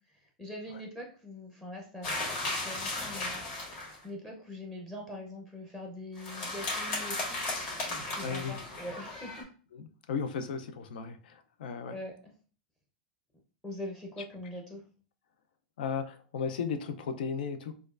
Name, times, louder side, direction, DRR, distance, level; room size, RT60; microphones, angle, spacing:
voice 1, 0.1-2.3 2.5-3.4 4.0-7.3 8.1-9.5 11.9-12.1 13.6-14.8, left 1 dB, 10° left, 0.6 m, -42 dB
sound 1, 2.0-4.0 6.2-9.4, left 2 dB, 40° left, 1.7 m, -35 dB
voice 2, 8.2-8.6 9.7-12.0 15.8-17.7, left 6 dB, 80° left, 0.5 m, -35 dB
4.3 x 2.4 x 2.4 m
supercardioid pair, 135°, 5 cm